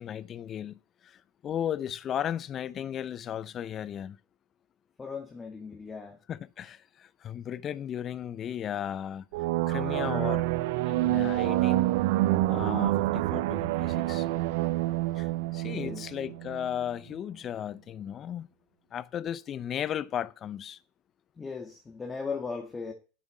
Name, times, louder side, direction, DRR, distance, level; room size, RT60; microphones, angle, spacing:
voice 1, 0.0-4.2 6.3-9.3 9.7-10.5 10.9-11.9 12.5-14.3 15.1-18.5 18.9-20.8, left 10 dB, 40° left, 0.7 m, -35 dB
voice 2, 5.0-6.2 15.7-16.0 21.4-22.9, left 5 dB, 20° left, 1.9 m, -37 dB
sound 1, 9.3-16.7, right 17 dB, 70° right, 0.5 m, -27 dB
8.5 x 7.7 x 5.5 m
hypercardioid pair, 95°, 0 cm